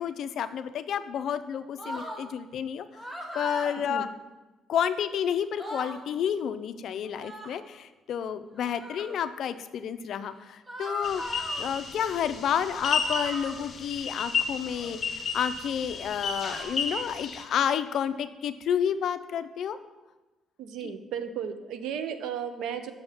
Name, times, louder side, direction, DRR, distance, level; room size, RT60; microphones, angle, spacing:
voice 1, 0.0-2.9 3.3-4.1 4.7-11.2 11.6-19.8 20.8-20.9, left 8 dB, 70° left, 12 dB, 0.4 m, -30 dB
sound 1, 1.8-2.2 2.9-3.7 5.1-5.2 5.4-6.0 7.1-7.6 8.6-9.2 10.7-11.7 12.7-13.7 14.6-15.0 15.9-16.7, equal, 20° right, 1.1 m, -39 dB
sound 2, 11.0-17.4, left 5 dB, 50° left, 0.8 m, -33 dB
voice 2, 20.6-22.9, right 8 dB, 85° right, 9 dB, 0.5 m, -34 dB
6.2 x 5.5 x 3.4 m, 1.1 s
cardioid pair, 100°, 0 cm